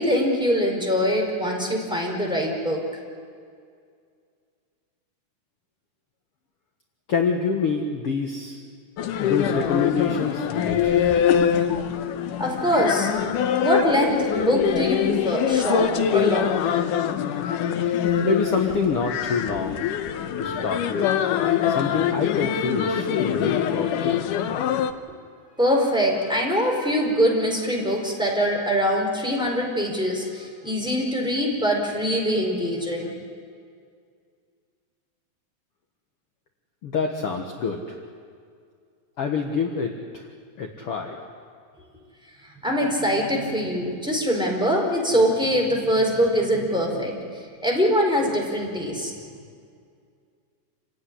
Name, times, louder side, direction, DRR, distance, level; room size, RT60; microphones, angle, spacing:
voice 1, 0.0-2.8 12.4-13.1 13.6-16.5 25.6-33.1 42.4-47.2 47.6-49.1, equal, ahead, 0 dB, 4.4 m, -23 dB
voice 2, 7.1-8.6 9.2-11.1 18.2-19.9 20.4-21.1 21.7-24.2 36.8-38.0 39.2-40.3 40.6-41.2, left 5 dB, 55° left, 2 dB, 2.1 m, -26 dB
sound 1, 9.0-24.9, left 9 dB, 80° left, 2.5 m, -24 dB
28.5 x 16.5 x 9.9 m, 2.2 s
omnidirectional pair, 3.7 m